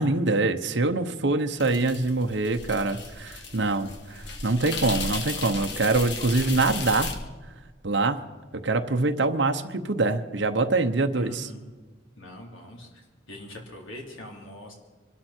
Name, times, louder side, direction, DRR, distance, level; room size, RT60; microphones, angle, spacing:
voice 1, 0.0-7.1 7.8-8.2 8.5-11.5, right 3 dB, 65° right, 5 dB, 0.9 m, -24 dB
sound 1, 1.6-7.1, left 3 dB, 60° left, 1.8 m, -35 dB
voice 2, 11.1-11.6 12.2-14.7, left 1 dB, 85° left, 0 dB, 3.8 m, -43 dB
24.0 x 12.5 x 4.4 m, 1.3 s
head